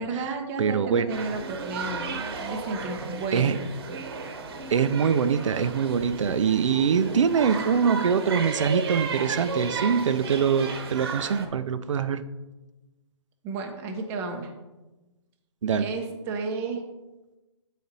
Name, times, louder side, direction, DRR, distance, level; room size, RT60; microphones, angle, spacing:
voice 1, 0.0-3.9 13.4-14.5 15.7-16.8, right 3 dB, 15° right, 2 dB, 0.6 m, -33 dB
voice 2, 0.6-1.1 3.3-3.6 4.7-12.2 15.6-15.9, right 6 dB, 70° right, 11 dB, 0.5 m, -23 dB
sound 1, 1.1-11.5, right 4 dB, 50° right, 1.0 m, -34 dB
8.4 x 4.1 x 4.0 m, 1.1 s
hypercardioid pair, 160°, 16 cm